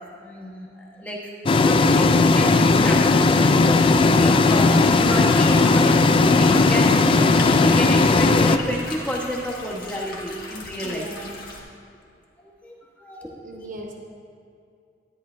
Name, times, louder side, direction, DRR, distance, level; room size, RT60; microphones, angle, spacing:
voice 1, 0.2-1.2 1.6-11.1 12.4-13.7, equal, 10° left, -4 dB, 1.2 m, -31 dB
sound 1, 1.5-8.6, left 3 dB, 30° left, 0.3 m, -17 dB
sound 2, 4.1-11.6, left 3 dB, 55° left, 1.5 m, -38 dB
voice 2, 10.8-11.4 13.4-14.0, right 2 dB, 45° right, 0 dB, 1.0 m, -37 dB
13.5 x 10.0 x 2.2 m, 2.4 s
head